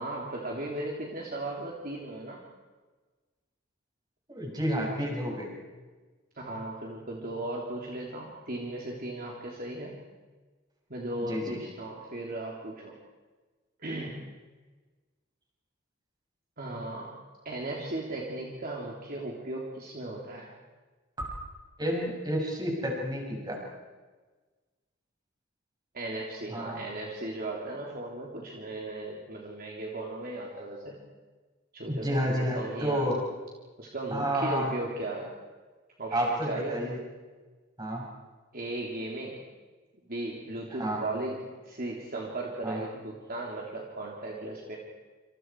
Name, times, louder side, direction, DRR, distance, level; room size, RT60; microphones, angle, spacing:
voice 1, 0.0-2.4 6.3-10.0 10.9-12.9 13.8-14.4 16.6-17.1 17.4-20.5 25.9-31.0 31.7-33.0 33.8-35.3 36.0-36.9 38.5-39.4 40.1-44.8, right 2 dB, 45° right, -2 dB, 3.4 m, -36 dB
voice 2, 4.3-5.5 11.3-11.6 21.8-23.6 26.5-26.8 31.9-33.2 34.1-34.7 36.1-37.0 37.8-38.0 40.8-41.0 42.6-42.8, equal, 20° right, -1 dB, 7.2 m, -30 dB
28.0 x 27.5 x 4.8 m, 1.3 s
head